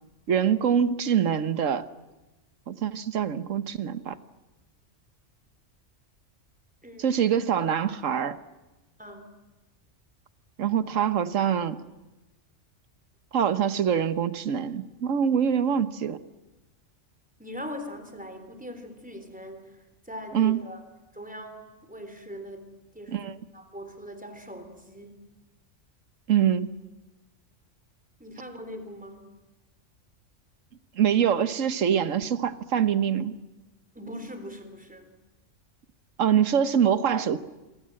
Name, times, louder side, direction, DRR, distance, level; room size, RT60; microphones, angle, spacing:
voice 1, 0.3-1.9 2.7-4.2 7.0-8.4 10.6-11.8 13.3-16.2 20.3-20.6 23.1-23.4 26.3-26.7 31.0-33.4 36.2-37.4, right 8 dB, 90° right, 13 dB, 1.4 m, -24 dB
voice 2, 6.8-7.2 9.0-9.3 17.4-20.8 21.1-23.3 23.5-25.2 28.2-29.2 34.0-35.1, equal, 5° right, 7 dB, 3.5 m, -41 dB
26.5 x 23.5 x 7.7 m, 1.1 s
omnidirectional pair, 1.3 m